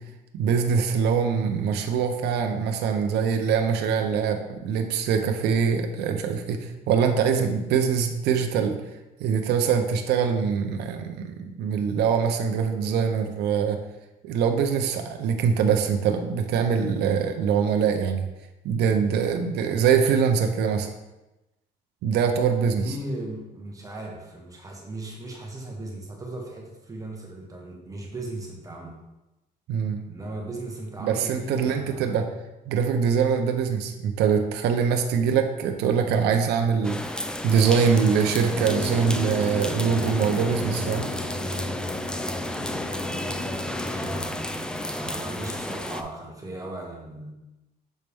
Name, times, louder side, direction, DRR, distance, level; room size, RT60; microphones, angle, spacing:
voice 1, 0.3-8.8 9.2-13.8 14.2-18.2 18.6-20.9 22.0-22.8 29.7-30.0 31.0-32.3 32.7-41.1, right 6 dB, 75° right, 5 dB, 0.6 m, -23 dB
voice 2, 22.6-29.0 30.1-32.1 43.9-47.3, right 2 dB, 20° right, -1 dB, 1.2 m, -37 dB
sound 1, 36.8-46.0, left 1 dB, 5° left, 0.3 m, -32 dB
sound 2, 38.5-44.2, left 1 dB, 30° left, 1.5 m, -33 dB
6.5 x 4.2 x 3.4 m, 0.99 s
cardioid pair, 110°, 17 cm